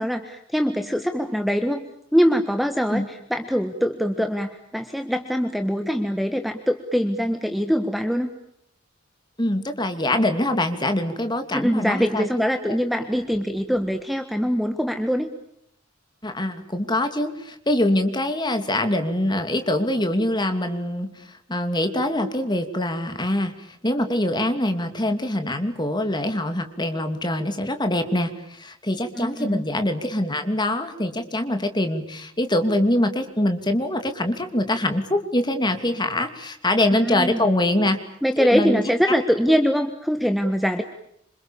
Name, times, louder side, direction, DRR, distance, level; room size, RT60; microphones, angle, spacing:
voice 1, 0.0-1.8 2.1-8.3 11.5-15.3 29.1-29.6 36.9-37.5 38.2-40.8, equal, ahead, 7 dB, 1.6 m, -23 dB
voice 2, 9.4-12.3 12.6-12.8 16.2-21.1 21.5-23.5 23.8-38.0 38.4-38.8 39.1-39.2, left 1 dB, 20° left, 7 dB, 2.8 m, -24 dB
27.5 x 27.0 x 7.1 m, 0.75 s
head